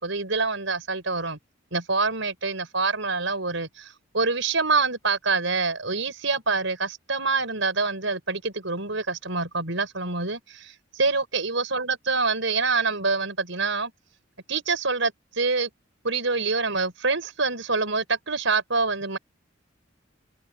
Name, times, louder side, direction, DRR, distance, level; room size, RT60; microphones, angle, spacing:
voice 1, 0.0-1.4 1.7-13.9 14.5-15.7 16.0-19.2, right 4 dB, 75° right, 6.0 m, -26 dB
head